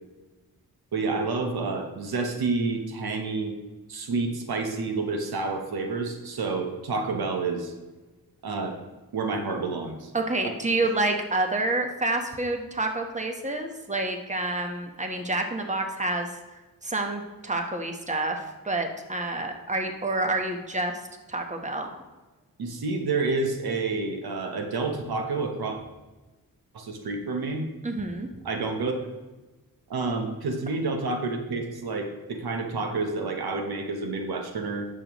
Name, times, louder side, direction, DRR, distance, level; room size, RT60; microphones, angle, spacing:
voice 1, 0.9-3.5 3.9-7.7 8.4-8.8 9.1-10.1 22.6-25.8 26.7-27.6 28.4-28.9 29.9-34.9, right 3 dB, 85° right, 4 dB, 1.1 m, -29 dB
voice 2, 10.1-16.3 16.8-21.0 21.3-21.9 27.8-28.3, right 2 dB, 20° right, 4 dB, 1.2 m, -28 dB
10.5 x 6.9 x 3.1 m, 1.2 s
cardioid pair, 65°, 36 cm